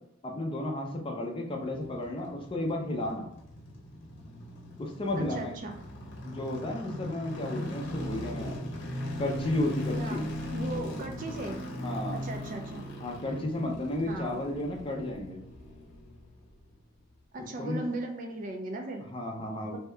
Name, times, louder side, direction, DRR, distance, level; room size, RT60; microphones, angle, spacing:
voice 1, 0.2-3.3 4.8-5.6 6.2-8.7 9.2-10.2 11.8-12.2 13.0-15.4 17.6-17.8 19.1-19.8, left 1 dB, 25° left, 1 dB, 0.4 m, -33 dB
sound 1, 1.6-16.7 17.0-17.1, equal, 55° left, 0.7 m, -39 dB
voice 2, 5.1-5.8 10.0-10.3 10.5-11.6 12.1-12.9 14.1-14.4 17.3-19.1 19.7-19.8, right 2 dB, 40° right, 3 dB, 0.4 m, -37 dB
2.7 x 2.2 x 3.1 m, 0.75 s
head